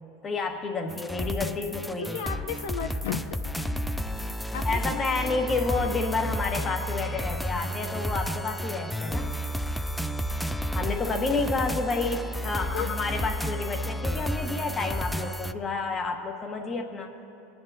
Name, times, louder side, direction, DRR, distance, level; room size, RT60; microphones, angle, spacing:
voice 1, 0.2-2.2 4.6-9.3 10.7-17.1, left 3 dB, 30° left, 4 dB, 1.2 m, -30 dB
sound 1, 0.9-15.5, equal, 5° left, 0.3 m, -31 dB
voice 2, 2.1-3.7 4.5-5.9 7.6-7.8 12.7-12.9 13.2-13.3, left 7 dB, 80° left, 7 dB, 0.6 m, -35 dB
23.5 x 9.7 x 2.7 m, 2.8 s
hypercardioid pair, 100°, 0 cm